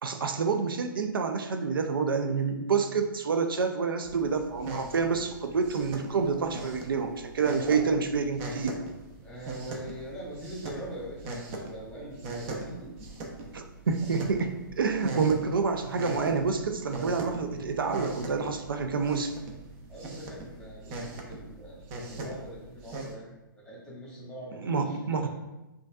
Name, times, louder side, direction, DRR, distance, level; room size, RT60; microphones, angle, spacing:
voice 1, 0.0-8.8 13.5-19.4 24.6-25.3, right 5 dB, 80° right, 6 dB, 0.4 m, -28 dB
sound 1, 4.0-23.1, right 2 dB, 30° right, 0.6 m, -40 dB
voice 2, 7.7-8.0 9.2-12.9 19.9-25.3, right 1 dB, 5° left, -6 dB, 1.3 m, -43 dB
5.1 x 2.5 x 2.3 m, 1.0 s
hypercardioid pair, 130°, 12 cm